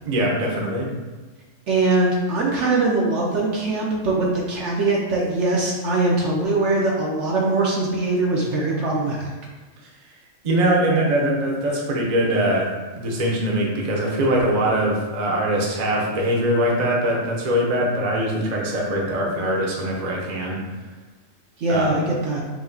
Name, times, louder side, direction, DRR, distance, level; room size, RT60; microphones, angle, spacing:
voice 1, 0.0-0.9 10.4-12.7 13.0-20.6 21.7-22.0, right 1 dB, 40° right, -2 dB, 0.7 m, -22 dB
voice 2, 1.7-9.3 21.6-22.4, right 2 dB, 65° right, -3 dB, 0.9 m, -22 dB
4.8 x 2.8 x 2.7 m, 1.3 s
omnidirectional pair, 1.4 m